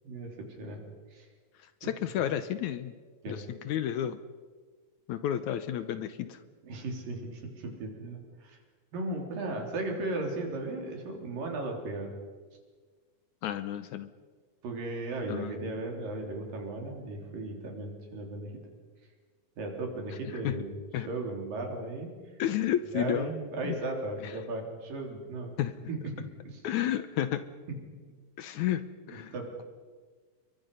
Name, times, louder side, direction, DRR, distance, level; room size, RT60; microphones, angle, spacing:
voice 1, 0.0-0.8 1.1-1.3 1.8-1.9 2.2-2.3 3.2-3.4 6.6-8.6 8.9-12.1 14.6-18.6 19.6-20.8 21.1-22.1 22.9-25.5 25.9-26.6 27.7-27.8 29.1-29.6, right 2 dB, 80° right, 2 dB, 5.3 m, -36 dB
voice 2, 1.6-2.9 3.3-4.2 5.1-6.4 13.4-14.1 15.3-15.8 20.4-20.6 20.9-21.1 22.4-23.3 23.6-23.8 24.2-24.3 25.6-25.9 26.6-27.4 28.4-29.3, left 11 dB, 75° left, 12 dB, 2.0 m, -31 dB
28.5 x 23.5 x 5.5 m, 1.5 s
omnidirectional pair, 3.9 m